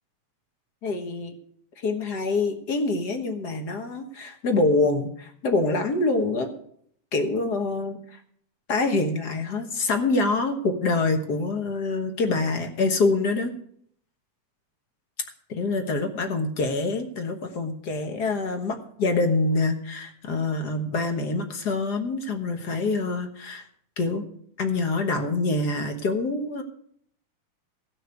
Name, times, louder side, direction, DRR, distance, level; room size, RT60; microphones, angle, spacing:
voice 1, 0.8-1.3 1.8-6.5 7.1-8.0 8.7-13.5 15.5-23.6 24.0-24.2 24.6-26.6, left 3 dB, 50° left, 5 dB, 1.3 m, -25 dB
16.0 x 6.1 x 8.1 m, 0.66 s
omnidirectional pair, 3.4 m